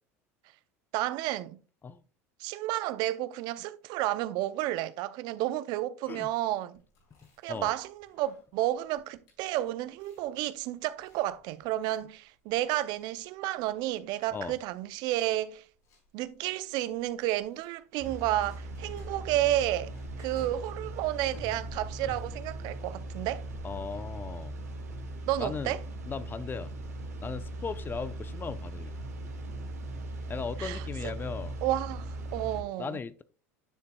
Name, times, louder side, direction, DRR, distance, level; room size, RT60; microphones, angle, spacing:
voice 1, 0.9-1.6 2.4-6.8 7.4-15.6 16.1-19.9 20.2-23.4 25.3-25.8 30.6-31.1 31.6-32.1 32.3-33.0, right 14 dB, 60° right, 0.5 m, -31 dB
Chewing mastication, 6.8-22.7, equal, 65° left, 4.5 m, -56 dB
voice 2, 7.2-7.7 14.3-14.5 23.6-24.6 25.4-25.7 26.1-26.7 27.2-28.9 30.3-31.5 32.8-33.2, left 5 dB, 25° left, 0.5 m, -37 dB
sound 1, 18.0-32.6, right 1 dB, 90° right, 1.7 m, -39 dB
9.9 x 6.6 x 2.3 m
hypercardioid pair, 85°, 8 cm